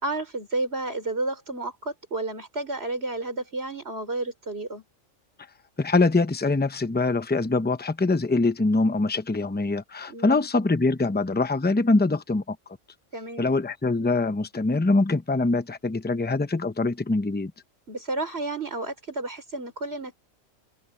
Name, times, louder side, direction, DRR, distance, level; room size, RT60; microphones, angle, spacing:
voice 1, 0.0-4.8 10.1-10.4 13.1-13.5 17.9-20.1, right 2 dB, 50° right, 4.7 m, -31 dB
voice 2, 5.8-12.6 13.4-17.5, left 3 dB, 10° left, 0.6 m, -23 dB
open air
omnidirectional pair, 1.4 m